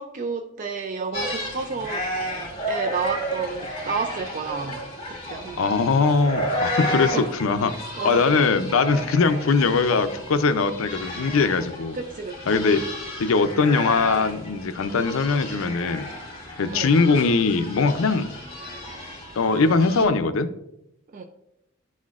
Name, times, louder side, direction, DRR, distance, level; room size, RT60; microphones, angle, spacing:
voice 1, 0.0-2.0 2.7-4.8 5.3-5.7 6.9-7.3 7.7-8.4 11.9-12.4 16.7-16.9 21.1-21.2, right 4 dB, 40° right, 6 dB, 0.4 m, -31 dB
sound 1, 1.1-20.1, equal, 25° left, 2.0 m, -33 dB
voice 2, 5.6-7.7 8.0-12.0 12.5-12.8 13.2-16.1 16.6-18.3 19.4-20.5, left 4 dB, 75° left, 11 dB, 0.5 m, -21 dB
11.0 x 4.2 x 2.4 m, 0.85 s
head